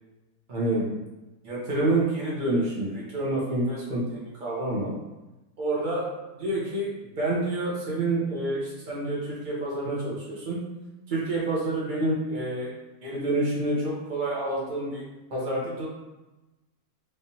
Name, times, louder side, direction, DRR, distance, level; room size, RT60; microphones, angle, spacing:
voice 1, 0.5-0.9 1.4-4.9 5.6-6.0 6.3-10.6 11.1-12.7 13.0-15.0 15.3-15.9, right 2 dB, 35° right, -5 dB, 1.0 m, -28 dB
3.4 x 3.3 x 2.8 m, 1.1 s
omnidirectional pair, 1.7 m